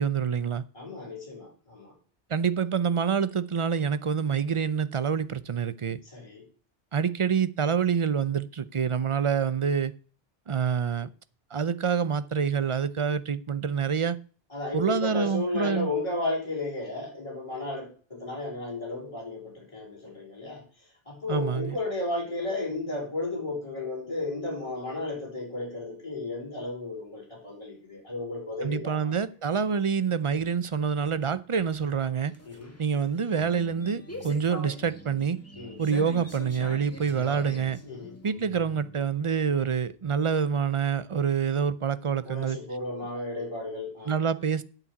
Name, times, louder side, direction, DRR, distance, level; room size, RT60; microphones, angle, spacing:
voice 1, 0.0-0.6 2.3-6.0 6.9-9.9 10.5-11.1 11.5-14.2 14.7-15.9 21.3-21.8 28.6-32.4 32.8-35.4 35.8-37.8 38.2-42.6 44.1-44.6, right 6 dB, 40° right, 0.5 m, -27 dB
voice 2, 0.7-1.9 6.0-6.4 14.5-20.6 21.1-29.1 32.5-32.7 35.6-35.8 37.8-38.1 42.3-44.1, left 2 dB, 30° left, 4.6 m, -33 dB
sound 1, 32.1-39.0, left 1 dB, 15° left, 1.8 m, -43 dB
8.6 x 6.9 x 8.4 m
omnidirectional pair, 1.0 m